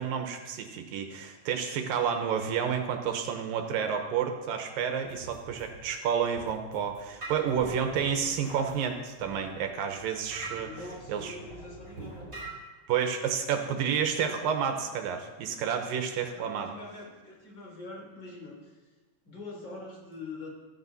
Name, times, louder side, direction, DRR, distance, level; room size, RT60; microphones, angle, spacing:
voice 1, 0.0-10.7 11.1-11.4 12.9-16.7, right 7 dB, 75° right, 5 dB, 2.6 m, -30 dB
voice 2, 3.6-3.9 10.7-12.3 16.3-18.6 19.2-20.5, left 3 dB, 30° left, -2 dB, 3.9 m, -44 dB
sound 1, 5.0-12.5, right 2 dB, 20° right, 4.7 m, -44 dB
15.5 x 14.0 x 4.1 m, 1.2 s
omnidirectional pair, 4.3 m